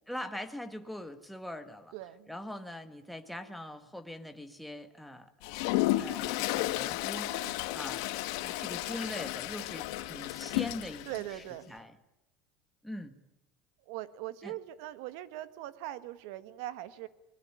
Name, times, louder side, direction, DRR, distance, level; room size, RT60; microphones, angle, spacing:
voice 1, 0.1-1.9 2.3-5.3 6.0-11.9 12.8-13.2 14.4-14.5, left 1 dB, ahead, 6 dB, 1.5 m, -42 dB
voice 2, 1.9-2.3 7.2-7.6 11.1-11.8 13.9-17.1, right 14 dB, 75° right, 13 dB, 1.5 m, -41 dB
Toilet flush, 5.4-11.2, left 18 dB, 75° left, 1.3 m, -33 dB
23.0 x 20.0 x 10.0 m, 0.91 s
supercardioid pair, 140°, 2 cm